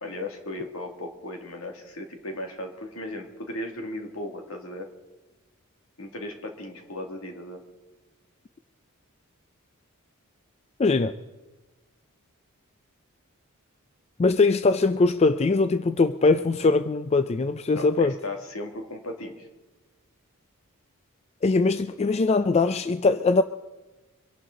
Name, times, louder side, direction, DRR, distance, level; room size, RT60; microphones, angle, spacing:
voice 1, 0.0-4.9 6.0-7.6 17.7-19.5, left 1 dB, 70° left, 3 dB, 2.2 m, -36 dB
voice 2, 10.8-11.1 14.2-18.1 21.4-23.4, left 3 dB, 30° left, 11 dB, 0.4 m, -21 dB
24.5 x 11.5 x 3.8 m, 1.2 s
head